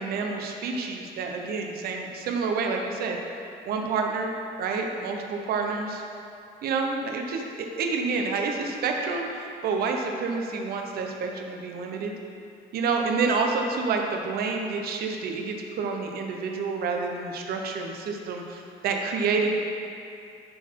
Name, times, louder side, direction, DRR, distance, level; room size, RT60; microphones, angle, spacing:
voice 1, 0.0-3.2 3.7-4.3 4.6-6.0 6.6-12.1 12.7-19.5, right 4 dB, 65° right, 2 dB, 0.8 m, -28 dB
10.0 x 4.1 x 4.6 m, 2.5 s
cardioid pair, 110°, 17 cm